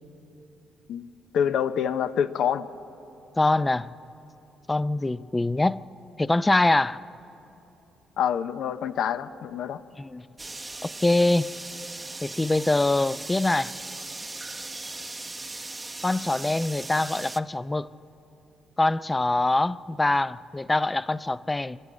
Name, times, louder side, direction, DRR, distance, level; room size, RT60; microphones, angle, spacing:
voice 1, 1.3-2.7 8.2-9.8, left 8 dB, 75° left, 0.6 m, -26 dB
voice 2, 3.4-3.9 4.7-5.8 6.2-7.0 10.0-10.2 10.8-11.5 12.2-13.7 16.0-17.9 18.8-21.8, left 2 dB, 15° left, 0.4 m, -24 dB
sound 1, 10.4-17.4, right 2 dB, 20° right, 0.7 m, -38 dB
25.5 x 13.0 x 8.3 m
cardioid pair, 90°, 0 cm